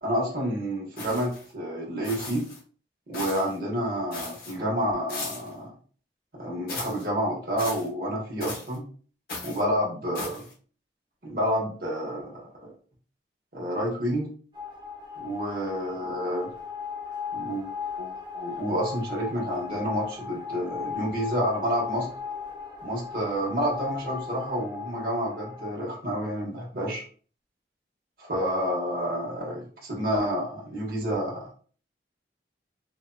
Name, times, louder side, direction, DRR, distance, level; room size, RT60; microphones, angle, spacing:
voice 1, 0.0-2.5 3.1-5.7 6.4-8.8 9.4-10.4 11.2-12.7 13.5-14.3 15.2-16.5 17.3-17.7 18.0-22.1 22.8-27.0 28.2-31.5, equal, 50° right, -4 dB, 1.3 m, -29 dB
sound 1, 1.0-1.5 2.0-2.6 3.1-3.6 4.1-4.6 5.1-5.5 6.7-7.1 7.6-7.9 8.4-8.8 9.3-9.6 10.1-10.5, left 3 dB, 55° left, 1.2 m, -37 dB
sound 2, 14.5-25.7, left 6 dB, 25° right, 0.7 m, -37 dB
4.9 x 2.8 x 2.3 m, 0.42 s
head